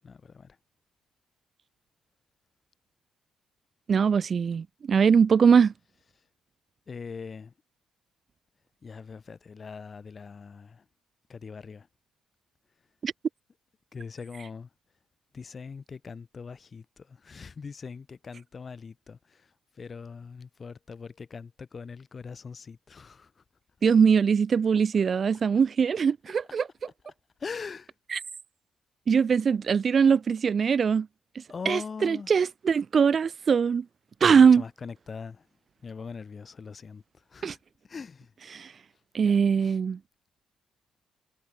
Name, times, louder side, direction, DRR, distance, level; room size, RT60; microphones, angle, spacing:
voice 1, 0.0-0.6 6.9-7.5 8.8-10.8 11.3-11.9 13.9-14.7 15.3-19.5 19.8-23.3 25.3-25.6 26.8-26.9 27.4-27.9 31.5-32.4 34.2-35.5 35.8-37.0 37.3-37.6 37.9-38.3 39.2-39.3 39.6-39.8, left 5 dB, 40° left, 1.7 m, -41 dB
voice 2, 3.9-5.7 13.0-13.1 23.8-26.7 28.1-28.2 29.1-31.1 31.4-33.9 34.2-34.6 37.4-37.6 38.5-38.7 39.1-40.0, right 6 dB, 45° right, 0.3 m, -22 dB
cardioid pair, 90°, 0 cm